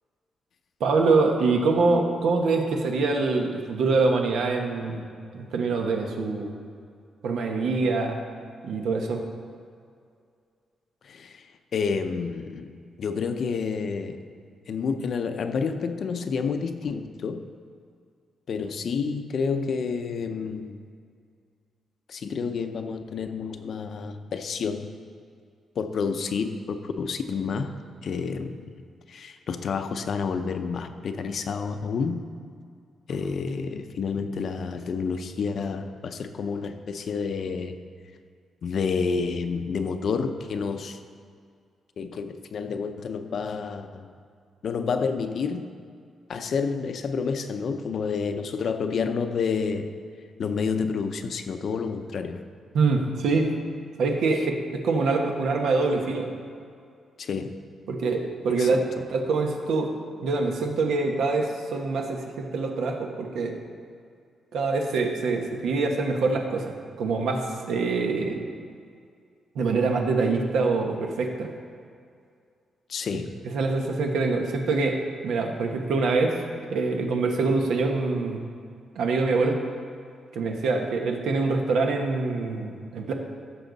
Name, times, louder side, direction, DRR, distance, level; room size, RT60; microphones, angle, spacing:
voice 1, 0.8-5.0 5.3-6.5 7.2-8.2 8.6-9.2 52.7-53.5 54.0-56.3 57.9-59.9 60.2-63.6 64.5-68.4 69.5-71.5 73.4-76.4 76.7-78.4 78.9-79.6 80.3-83.1, right 3 dB, 80° right, 2 dB, 1.3 m, -25 dB
voice 2, 11.0-11.4 11.7-12.7 13.0-14.2 14.7-17.5 18.5-20.8 22.1-24.9 25.8-27.7 28.0-28.5 29.1-32.2 33.1-37.8 38.6-41.0 42.0-44.1 44.6-45.7 46.3-49.9 50.4-52.4 57.2-57.5 58.6-58.7 72.9-73.3, left 5 dB, 50° left, 8 dB, 0.6 m, -29 dB
15.5 x 6.8 x 4.0 m, 2.3 s
wide cardioid pair, 165°, 0 cm